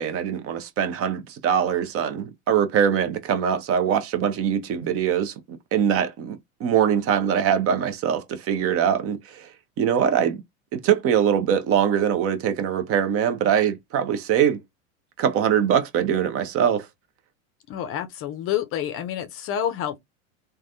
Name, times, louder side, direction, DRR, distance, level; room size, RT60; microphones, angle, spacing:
voice 1, 0.0-10.4 10.7-14.6 15.2-16.9, right 8 dB, 35° right, 0.7 m, -23 dB
voice 2, 17.7-20.0, left 10 dB, 35° left, 0.5 m, -28 dB
3.3 x 2.2 x 2.6 m
hypercardioid pair, 95°, 40 cm